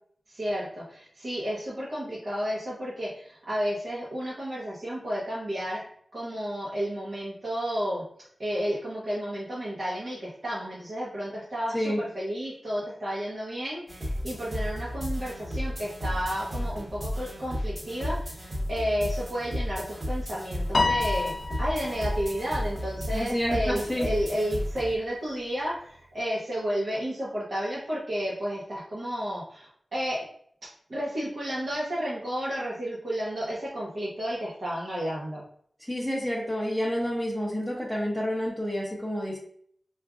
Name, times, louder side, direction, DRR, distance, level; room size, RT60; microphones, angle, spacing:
voice 1, 0.3-5.8 6.1-8.0 8.4-30.3 30.6-35.4, equal, 60° right, -9 dB, 0.9 m, -32 dB
sound 1, 13.9-25.0, equal, 30° right, 1.3 m, -33 dB
Piano, 20.7-23.2, left 3 dB, 60° left, 0.5 m, -29 dB
voice 2, 23.1-24.1 35.9-39.4, equal, ahead, -5 dB, 0.7 m, -29 dB
4.9 x 2.5 x 2.3 m, 0.63 s
wide cardioid pair, 100°, 0 cm